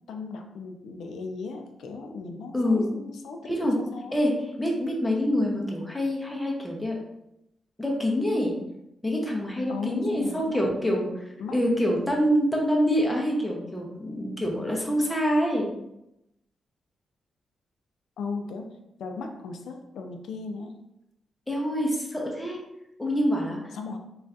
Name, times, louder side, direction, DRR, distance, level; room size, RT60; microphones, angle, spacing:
voice 1, 0.1-4.2 9.7-10.6 11.4-11.6 18.2-18.7 19.0-20.7 23.7-24.0, left 4 dB, 80° left, 4 dB, 0.3 m, -36 dB
voice 2, 2.5-2.9 3.4-3.8 4.1-4.3 4.6-6.9 7.8-8.5 9.0-11.2 11.5-15.7 21.5-22.6 23.0-23.6, equal, 5° left, -1 dB, 0.6 m, -26 dB
2.6 x 2.3 x 3.3 m, 0.86 s
wide cardioid pair, 145°, 0 cm